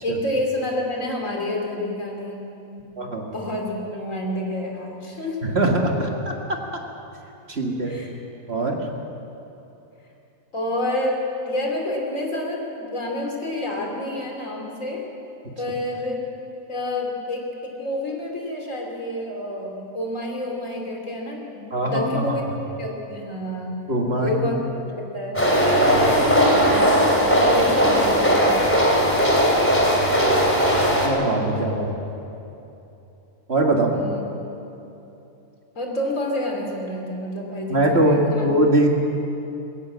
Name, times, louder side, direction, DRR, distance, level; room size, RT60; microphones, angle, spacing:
voice 1, 0.0-2.5 2.7-2.9 3.3-5.4 7.9-8.1 10.5-15.1 15.6-16.2 16.7-23.7 24.2-24.6 25.0-25.5 25.7-26.0 27.4-28.8 33.9-34.2 35.8-38.5, left 1 dB, 60° left, 0 dB, 3.5 m, -28 dB
voice 2, 5.4-6.6 7.5-8.0 8.5-8.8 21.7-22.4 23.9-24.6 25.8-26.2 31.0-31.9 33.5-33.9 37.7-38.9, right 1 dB, 45° right, 1 dB, 2.1 m, -22 dB
sound 1, 25.3-31.1, equal, 10° left, 3.1 m, -18 dB
21.0 x 17.0 x 7.5 m, 2.9 s
omnidirectional pair, 1.6 m